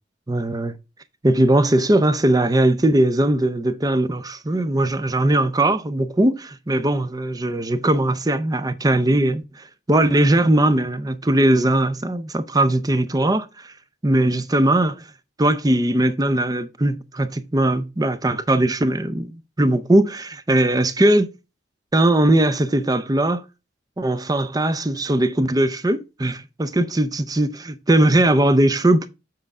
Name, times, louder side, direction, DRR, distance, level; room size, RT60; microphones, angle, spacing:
voice 1, 0.3-0.7 1.2-13.7 14.0-15.1 15.4-21.3 21.9-23.4 24.0-29.1, right 1 dB, 20° right, 0.5 m, -19 dB
7.6 x 5.4 x 3.5 m
head